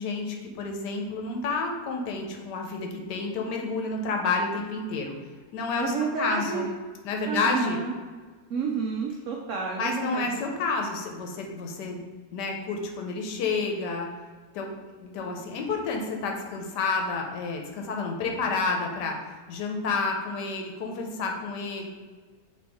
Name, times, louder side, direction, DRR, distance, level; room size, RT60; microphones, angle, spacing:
voice 1, 0.0-5.2 5.5-6.7 7.0-7.8 9.8-12.0 12.3-14.1 14.5-19.2 19.5-21.9, left 4 dB, 80° left, 2 dB, 1.3 m, -30 dB
voice 2, 5.8-6.7 7.3-8.0 8.5-10.4, right 5 dB, 80° right, 0 dB, 0.6 m, -30 dB
4.3 x 3.0 x 3.4 m, 1.4 s
omnidirectional pair, 1.8 m